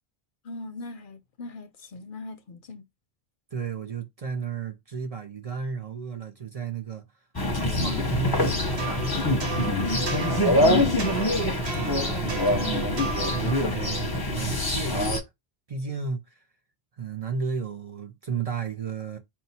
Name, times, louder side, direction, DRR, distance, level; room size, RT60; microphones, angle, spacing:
voice 1, 0.4-2.9 7.8-8.1 10.7-11.3, left 1 dB, 60° left, 0.7 m, -38 dB
voice 2, 3.5-7.0 7.7-9.9 11.8-15.2 15.7-16.4 17.0-19.2, right 6 dB, 45° right, 0.6 m, -34 dB
sound 1, 7.3-15.2, left 1 dB, 25° left, 0.7 m, -25 dB
sound 2, 8.3-14.2, right 5 dB, 80° right, 1.4 m, -35 dB
4.3 x 2.2 x 4.1 m
omnidirectional pair, 1.1 m